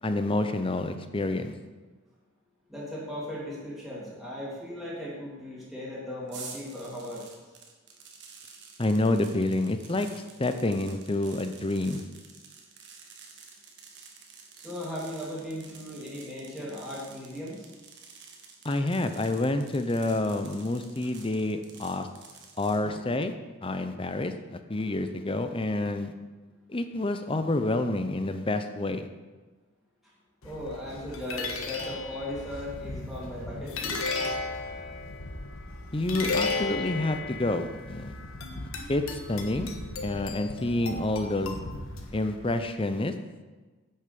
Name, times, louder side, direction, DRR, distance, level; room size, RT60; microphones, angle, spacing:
voice 1, 0.0-1.5 8.8-10.1 10.4-12.0 18.6-22.1 22.6-23.3 23.6-24.3 24.7-26.1 26.7-29.1 35.9-38.2 38.9-39.7 40.0-41.5 42.1-43.1, left 2 dB, 25° left, 8 dB, 0.6 m, -28 dB
voice 2, 2.7-7.2 14.6-17.7 22.8-23.0 30.4-34.0, left 1 dB, ahead, -7 dB, 2.9 m, -37 dB
sound 1, 6.3-22.8, right 5 dB, 55° right, 1.6 m, -50 dB
sound 2, 30.4-42.5, left 3 dB, 85° left, 1.5 m, -35 dB
10.0 x 6.7 x 6.8 m, 1.3 s
head